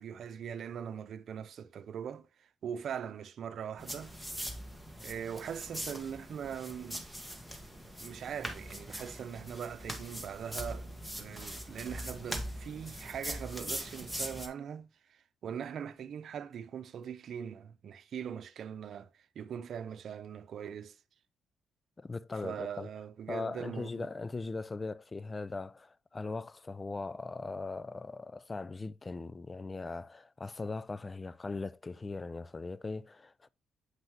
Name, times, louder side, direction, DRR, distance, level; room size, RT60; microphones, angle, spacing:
voice 1, 0.0-4.1 5.0-7.0 8.0-19.1 19.3-21.0 22.4-24.1, right 8 dB, 60° right, 0.8 m, -41 dB
sound 1, 3.8-14.5, equal, 5° left, 1.6 m, -42 dB
voice 2, 22.0-22.9 23.3-33.5, left 3 dB, 25° left, 0.4 m, -39 dB
8.2 x 5.5 x 3.1 m
cardioid pair, 90°, 0 cm